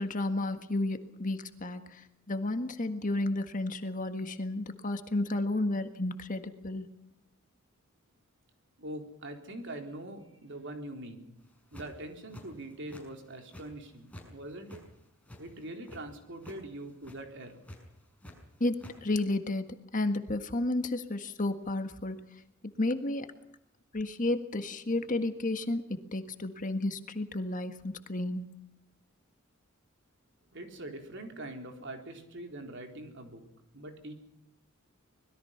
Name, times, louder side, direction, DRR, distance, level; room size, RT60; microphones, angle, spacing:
voice 1, 0.0-6.9 18.6-19.7 19.9-22.2 22.8-23.2 23.9-28.5, left 2 dB, 40° left, 8 dB, 1.7 m, -32 dB
voice 2, 8.8-11.4 11.7-14.8 15.4-17.7 30.5-33.4 33.7-34.1, right 1 dB, 60° right, 4 dB, 4.0 m, -43 dB
sound 1, 11.5-12.0 12.3-13.0 13.3-14.3 14.6-16.0 16.4-16.6 16.9-17.2 17.6-18.4 18.6-18.9, left 1 dB, 5° left, 5.9 m, -48 dB
25.0 x 21.0 x 5.8 m, 0.86 s
head